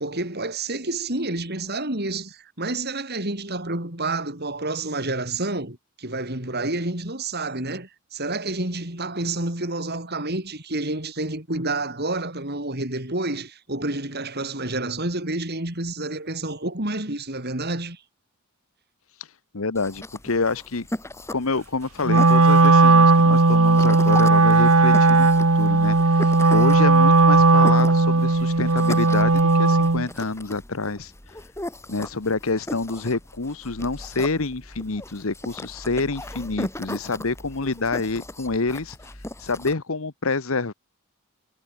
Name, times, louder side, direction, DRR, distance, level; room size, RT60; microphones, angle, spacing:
voice 1, 0.0-18.0, right 2 dB, 45° right, 5.8 m, -29 dB
voice 2, 19.5-20.9 21.3-25.3 25.5-31.1 31.9-39.0 39.4-40.7, left 3 dB, 65° left, 1.2 m, -27 dB
sound 1, 19.7-39.7, left 1 dB, 10° left, 2.3 m, -37 dB
Wind instrument woodwind instrument, 22.0-30.1, right 3 dB, 75° right, 1.7 m, -16 dB
head